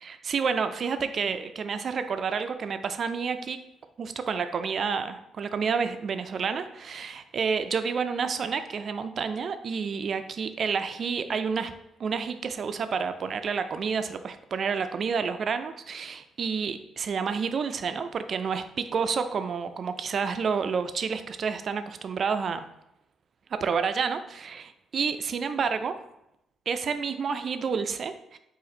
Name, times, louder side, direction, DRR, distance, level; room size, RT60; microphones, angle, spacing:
voice 1, 0.0-3.6 4.0-11.7 12.0-22.7 23.5-26.0 26.7-28.4, right 6 dB, 50° right, 10 dB, 0.3 m, -29 dB
4.1 x 2.4 x 3.9 m, 0.82 s
cardioid pair, 90°, 0 cm